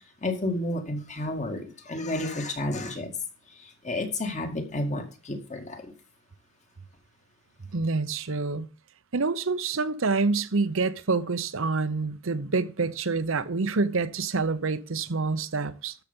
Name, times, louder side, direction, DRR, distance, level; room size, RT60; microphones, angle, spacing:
voice 1, 0.2-3.1 3.5-5.9, left 1 dB, 35° left, 2.2 m, -31 dB
voice 2, 7.7-8.7 9.1-15.9, right 4 dB, 65° right, 0.8 m, -27 dB
13.0 x 6.9 x 5.3 m
head